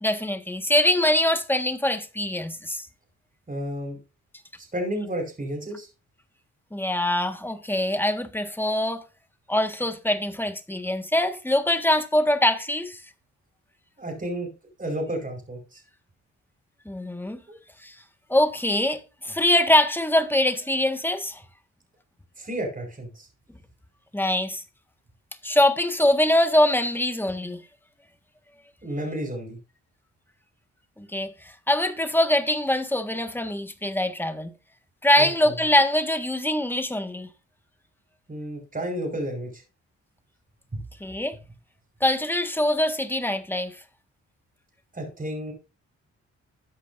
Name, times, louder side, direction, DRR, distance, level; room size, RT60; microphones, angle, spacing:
voice 1, 0.0-2.9 6.7-9.0 9.5-13.0 16.8-17.4 17.8-17.9 18.3-21.4 24.1-24.6 25.4-27.6 31.0-31.3 31.7-34.5 35.0-37.3 41.0-41.4 42.0-43.8, left 1 dB, 5° left, 1.6 m, -23 dB
voice 2, 3.5-4.0 4.6-5.9 14.0-14.5 14.8-15.8 17.5-17.6 22.4-23.3 28.8-29.6 35.2-35.3 38.3-39.6 40.7-40.8 44.9-45.5, right 1 dB, 25° right, 5.0 m, -31 dB
13.5 x 8.3 x 2.7 m
cardioid pair, 65°, 31 cm